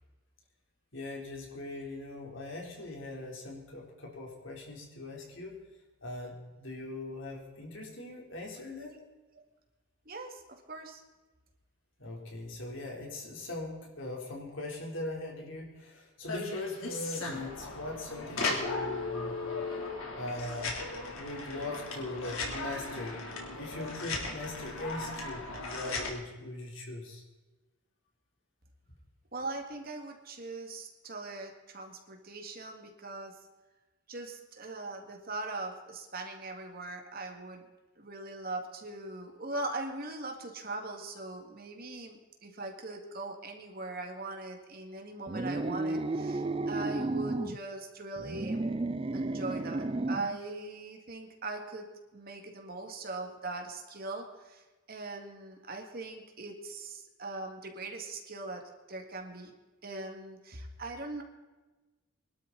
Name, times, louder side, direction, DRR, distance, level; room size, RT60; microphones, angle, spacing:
voice 1, 0.9-5.5 6.0-8.9 12.0-19.4 20.2-20.8 21.2-23.2 23.6-27.2, left 2 dB, 60° left, -1 dB, 3.8 m, -40 dB
voice 2, 10.1-11.0 12.8-12.9 29.3-33.4 34.1-37.7 38.0-48.7 49.1-58.6 58.9-59.5 59.8-61.2, right 2 dB, 45° right, 3 dB, 2.2 m, -41 dB
sound 1, 16.3-26.1, left 3 dB, 80° left, 3.4 m, -37 dB
sound 2, 45.3-47.6 48.2-50.4, right 2 dB, 25° right, 0.4 m, -33 dB
22.5 x 12.5 x 4.2 m, 1.2 s
head